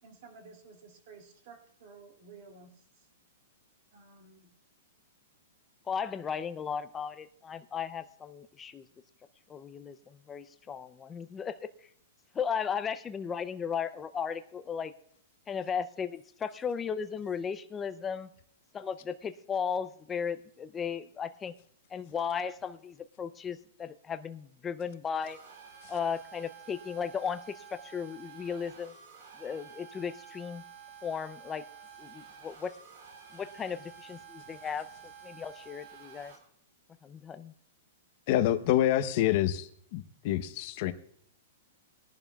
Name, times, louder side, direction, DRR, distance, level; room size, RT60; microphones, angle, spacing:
voice 1, 0.0-2.8 3.9-4.5, right 4 dB, 45° right, 2 dB, 2.5 m, -53 dB
voice 2, 5.9-8.9 9.5-11.7 12.3-14.9 15.5-18.3 18.7-21.5 21.9-25.4 25.9-28.9 29.4-30.6 31.0-31.6 32.0-32.7 33.3-34.9 35.2-36.3 37.0-37.5, left 7 dB, 15° left, 11 dB, 0.5 m, -36 dB
sound 1, 25.2-36.4, right 8 dB, 60° right, 4.0 m, -51 dB
voice 3, 38.3-40.9, left 13 dB, 40° left, 11 dB, 0.8 m, -27 dB
21.0 x 11.0 x 2.3 m, 0.65 s
hypercardioid pair, 165°, 0 cm